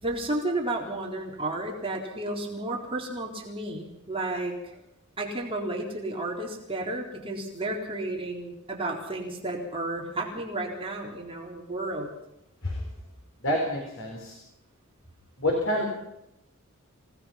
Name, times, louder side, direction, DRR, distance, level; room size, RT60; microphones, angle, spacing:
voice 1, 0.0-4.7 5.2-12.1, right 2 dB, 25° right, -1 dB, 3.8 m, -32 dB
voice 2, 13.4-14.4 15.4-16.0, left 1 dB, 65° left, 1 dB, 4.2 m, -28 dB
27.5 x 18.0 x 5.8 m, 0.87 s
head